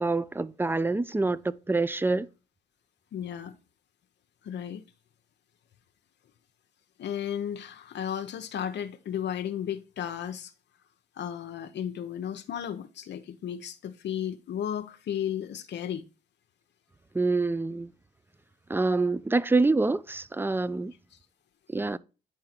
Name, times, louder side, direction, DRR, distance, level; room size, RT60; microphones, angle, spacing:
voice 1, 0.0-2.3 17.1-17.9 18.7-20.9 21.7-22.0, right 3 dB, 10° right, 0.4 m, -26 dB
voice 2, 3.1-3.5 4.4-4.8 7.0-10.5 11.2-16.0, left 9 dB, 60° left, 0.7 m, -34 dB
9.1 x 3.7 x 4.3 m
cardioid pair, 90°, 20 cm